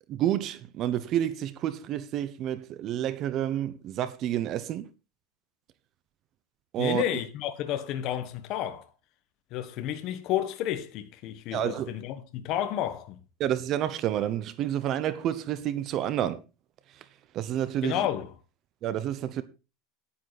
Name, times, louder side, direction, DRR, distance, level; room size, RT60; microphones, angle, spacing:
voice 1, 0.1-4.9 6.7-7.2 11.5-11.9 13.4-16.4 17.3-18.0 18.8-19.4, right 11 dB, 40° right, 0.9 m, -29 dB
voice 2, 6.8-8.8 9.5-13.2 17.8-18.3, left 11 dB, 50° left, 1.3 m, -31 dB
10.5 x 9.5 x 4.1 m
supercardioid pair, 145°, 0 cm